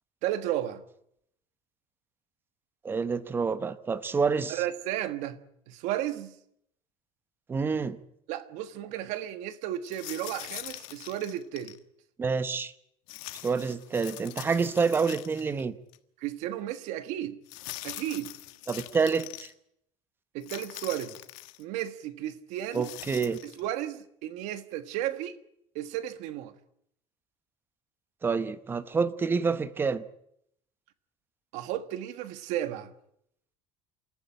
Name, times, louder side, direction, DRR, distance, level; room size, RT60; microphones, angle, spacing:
voice 1, 0.2-0.8 4.5-5.4 5.7-6.4 8.3-11.8 16.2-17.4 17.8-18.3 20.3-21.2 21.6-22.9 23.6-25.4 25.7-26.5 31.5-32.9, right 12 dB, 65° right, 1.5 m, -33 dB
voice 2, 2.8-4.6 7.5-8.0 12.2-12.7 13.4-15.8 18.7-19.5 22.7-23.4 28.2-30.0, right 5 dB, 15° right, 0.8 m, -28 dB
sound 1, 9.9-11.8 13.1-15.6 15.9-16.0 17.5-19.5 20.4-21.6 22.6-23.6, left 19 dB, 85° left, 1.4 m, -43 dB
27.5 x 14.0 x 8.9 m
cardioid pair, 165°, 13 cm